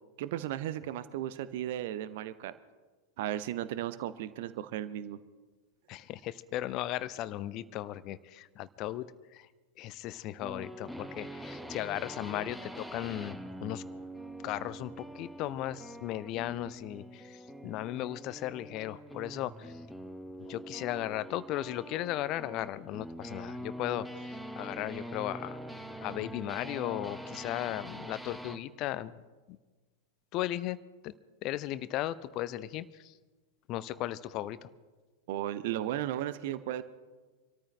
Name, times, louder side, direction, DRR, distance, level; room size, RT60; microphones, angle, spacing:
voice 1, 0.2-2.5 3.2-5.2 35.3-36.8, right 12 dB, 50° right, 15 dB, 0.7 m, -35 dB
voice 2, 5.9-9.1 9.3-9.5 9.8-13.8 14.4-19.8 20.5-25.6 26.0-29.2 29.5-29.6 30.3-30.8 31.0-31.1 31.4-33.1 33.7-34.7, left 14 dB, 40° left, 16 dB, 0.5 m, -36 dB
sound 1, 10.4-28.7, equal, ahead, 0.9 m, -44 dB
26.5 x 13.5 x 3.3 m, 1.3 s
figure-of-eight pair, 90°, 0 cm